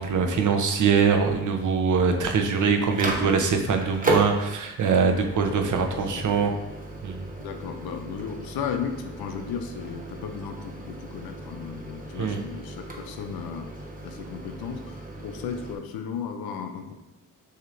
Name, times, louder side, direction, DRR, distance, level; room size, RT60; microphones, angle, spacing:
voice 1, 0.0-6.5 7.0-7.2 12.2-12.4, right 5 dB, 55° right, 4 dB, 0.7 m, -23 dB
Microwave oven, 2.1-15.8, right 1 dB, 25° right, 0.8 m, -35 dB
voice 2, 3.0-3.3 5.9-6.3 7.4-13.7 14.0-16.9, left 7 dB, 90° left, 6 dB, 0.5 m, -35 dB
6.3 x 2.8 x 2.5 m, 1.0 s
cardioid pair, 65°, 35 cm